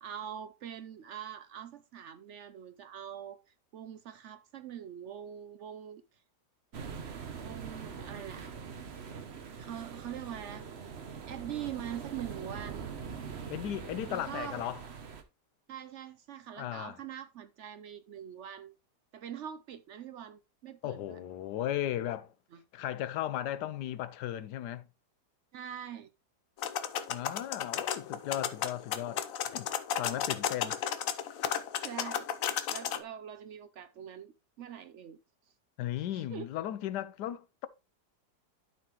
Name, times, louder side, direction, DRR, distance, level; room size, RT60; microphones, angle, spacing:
voice 1, 0.0-3.4 3.7-6.0 7.4-8.5 9.6-10.6 11.3-12.9 14.1-14.7 15.7-18.7 19.1-21.2 22.5-22.6 25.5-26.1 30.0-30.2 31.8-32.3 32.7-35.2 36.1-36.5, right 9 dB, 75° right, 0.6 m, -43 dB
sound 1, 6.7-15.2, right 6 dB, 45° right, 1.0 m, -43 dB
voice 2, 13.5-14.8 16.6-17.0 20.8-22.3 22.7-24.9 27.1-29.2 29.5-29.7 30.0-30.8 35.8-37.7, left 12 dB, 80° left, 1.2 m, -36 dB
sound 2, 26.6-33.0, left 9 dB, 65° left, 1.0 m, -34 dB
12.0 x 4.3 x 3.0 m
omnidirectional pair, 1.8 m